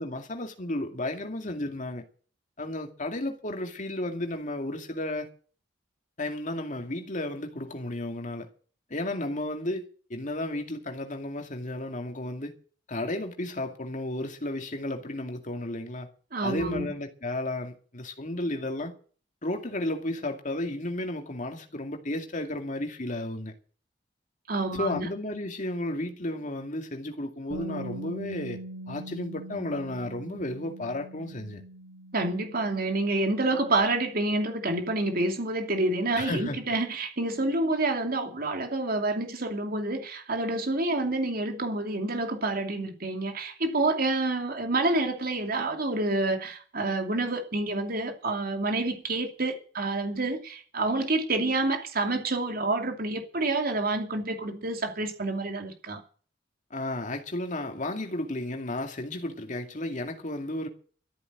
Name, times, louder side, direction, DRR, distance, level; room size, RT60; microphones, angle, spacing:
voice 1, 0.0-2.0 2.6-5.3 6.2-8.5 8.9-12.5 12.9-16.1 16.4-18.9 19.4-23.5 24.7-28.6 28.9-31.6 36.2-36.6 56.7-60.7, left 1 dB, 45° left, 2.3 m, -33 dB
voice 2, 16.3-16.9 24.5-25.1 32.1-56.0, right 2 dB, 55° right, 2.7 m, -28 dB
Bass guitar, 27.5-33.8, right 1 dB, 75° right, 5.9 m, -42 dB
13.5 x 8.7 x 8.9 m
head